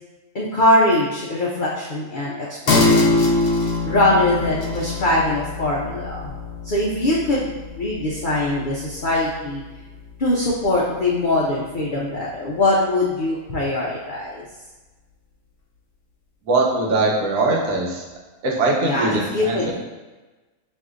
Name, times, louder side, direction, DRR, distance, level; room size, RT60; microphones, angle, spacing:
voice 1, 0.3-3.3 3.9-6.3 6.6-7.5 7.8-9.6 10.2-14.4 18.8-19.7, left 1 dB, 75° left, -5 dB, 0.4 m, -22 dB
sound 1, 2.7-9.7 10.1-10.2, left 2 dB, 90° left, 1.2 m, -23 dB
voice 2, 16.5-18.0 18.4-19.6, right 2 dB, 85° right, -2 dB, 1.3 m, -21 dB
6.1 x 2.6 x 2.5 m, 1.2 s
omnidirectional pair, 1.6 m